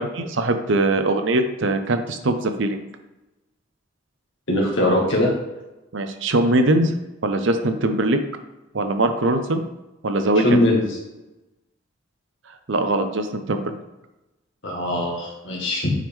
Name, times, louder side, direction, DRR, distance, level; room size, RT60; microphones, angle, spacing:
voice 1, 0.0-2.8 5.9-6.9 7.2-8.2 8.7-9.6 10.0-10.6 12.7-13.8, right 2 dB, 70° right, 7 dB, 0.7 m, -21 dB
voice 2, 4.5-5.3 10.4-10.8 14.6-15.9, left 1 dB, 70° left, -3 dB, 1.8 m, -20 dB
9.2 x 4.9 x 3.6 m, 1.0 s
head